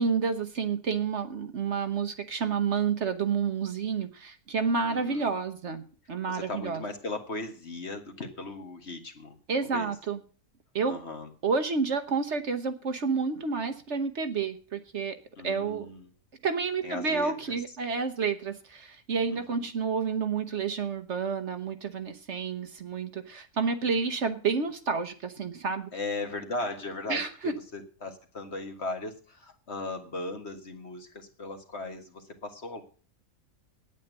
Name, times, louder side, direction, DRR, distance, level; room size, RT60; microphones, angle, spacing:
voice 1, 0.0-5.8 6.1-6.8 9.5-10.2 10.7-11.0 11.4-15.2 15.4-15.9 16.4-25.9 27.1-27.5, right 5 dB, 55° right, 9 dB, 1.2 m, -29 dB
voice 2, 4.8-5.3 6.3-9.3 9.6-9.9 10.9-11.3 15.4-16.1 16.8-17.6 19.3-19.6 25.9-32.8, left 2 dB, 50° left, 5 dB, 1.9 m, -37 dB
9.2 x 8.9 x 7.9 m, 0.40 s
omnidirectional pair, 1.5 m